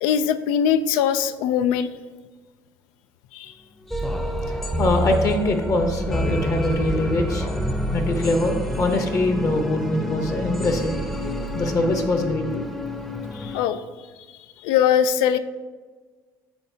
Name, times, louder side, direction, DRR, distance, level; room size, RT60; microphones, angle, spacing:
voice 1, 0.0-1.9 3.3-3.5 13.3-13.8 14.6-15.4, left 8 dB, 85° left, 12 dB, 0.3 m, -21 dB
sound 1, 3.9-13.6, equal, 5° left, 0.6 m, -28 dB
voice 2, 4.5-7.5 7.9-11.0 11.5-12.7, left 1 dB, 40° left, 5 dB, 0.8 m, -23 dB
10.5 x 3.7 x 2.7 m, 1.4 s
supercardioid pair, 95°, 8 cm